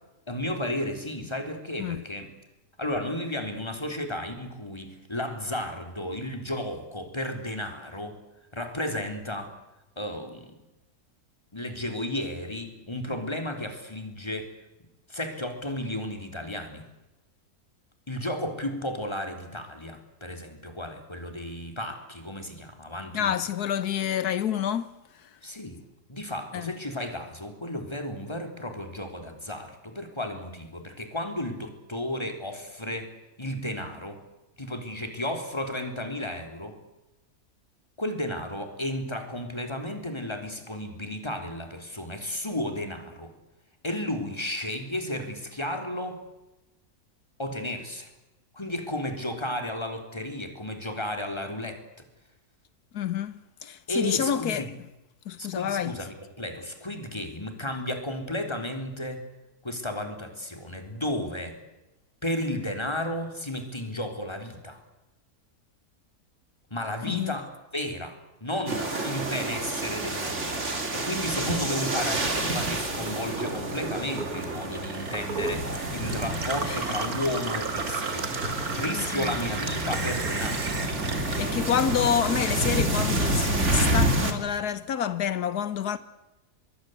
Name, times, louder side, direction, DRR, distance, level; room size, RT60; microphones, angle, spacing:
voice 1, 0.3-2.3 2.8-8.2 8.5-9.5 10.0-10.6 11.5-14.5 14.8-16.8 18.1-23.4 25.4-25.8 26.1-33.1 33.4-34.2 34.6-36.8 38.0-43.3 43.8-46.2 47.4-48.1 48.5-52.1 53.9-54.7 55.4-59.3 59.6-61.6 62.2-64.8 66.7-78.3 78.7-80.7, left 1 dB, 15° left, 3.9 m, -33 dB
voice 2, 23.1-25.3 26.5-26.7 52.9-54.7 55.3-56.0 67.1-67.3 76.6-76.8 78.9-79.4 81.2-86.0, left 9 dB, 90° left, 1.6 m, -28 dB
sound 1, 68.7-84.3, right 1 dB, 50° right, 3.3 m, -29 dB
Gurgling / Water tap faucet / Sink (filling or washing), 72.8-82.3 82.6-83.5, right 4 dB, 70° right, 2.7 m, -35 dB
25.0 x 21.5 x 8.1 m
omnidirectional pair, 1.6 m